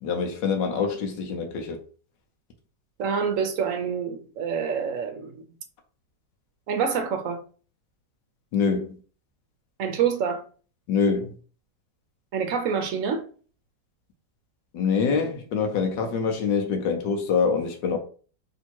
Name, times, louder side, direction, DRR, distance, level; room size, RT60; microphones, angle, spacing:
voice 1, 0.0-1.8 8.5-9.0 10.9-11.3 14.7-18.0, left 5 dB, 85° left, 1.6 m, -25 dB
voice 2, 3.0-5.4 6.7-7.4 9.8-10.4 12.3-13.3, right 6 dB, 65° right, 0.8 m, -27 dB
3.5 x 2.8 x 4.4 m
omnidirectional pair, 1.9 m